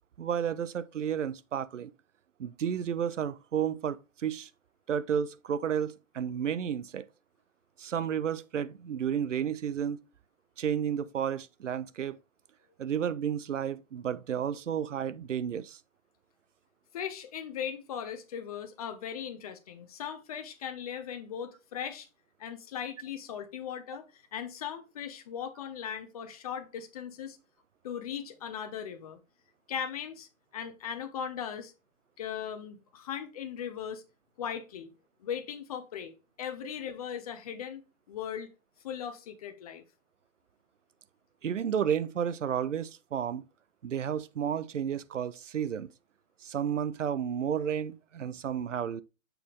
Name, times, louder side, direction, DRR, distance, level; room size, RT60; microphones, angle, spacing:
voice 1, 0.2-1.9 2.4-4.5 4.9-7.1 7.8-10.0 10.6-12.2 12.8-15.8 41.4-43.4 43.8-45.9 46.4-49.0, right 8 dB, 60° right, 0.6 m, -32 dB
voice 2, 16.9-22.1 22.4-27.4 27.8-29.2 29.7-31.7 32.2-34.0 34.4-34.9 35.2-37.8 38.1-38.5 38.8-39.8, left 8 dB, 30° left, 0.7 m, -38 dB
6.7 x 4.0 x 3.8 m
figure-of-eight pair, 120°, 41 cm